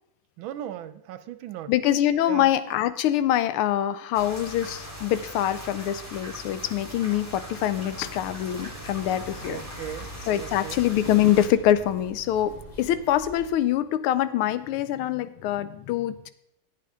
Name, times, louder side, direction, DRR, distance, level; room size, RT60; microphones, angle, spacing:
voice 1, 0.4-1.7 2.3-2.5 9.5-10.1 10.4-10.8, right 11 dB, 75° right, 12 dB, 1.3 m, -37 dB
voice 2, 1.7-9.6 10.3-16.3, left 12 dB, 85° left, 14 dB, 1.5 m, -24 dB
sound 1, 4.1-11.5, left 1 dB, 10° left, 1.3 m, -41 dB
sound 2, 4.2-13.0, right 3 dB, 40° right, 0.9 m, -48 dB
sound 3, 7.9-13.6, equal, 30° left, 0.8 m, -45 dB
13.5 x 8.6 x 3.6 m, 0.78 s
omnidirectional pair, 2.4 m